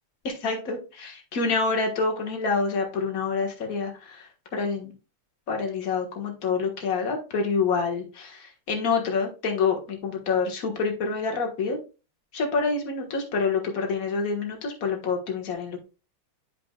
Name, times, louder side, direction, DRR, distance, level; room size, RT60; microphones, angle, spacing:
voice 1, 0.2-4.9 5.5-11.8 12.3-15.8, left 4 dB, 45° left, 2 dB, 1.7 m, -27 dB
11.0 x 5.1 x 2.3 m, 0.32 s
omnidirectional pair, 2.4 m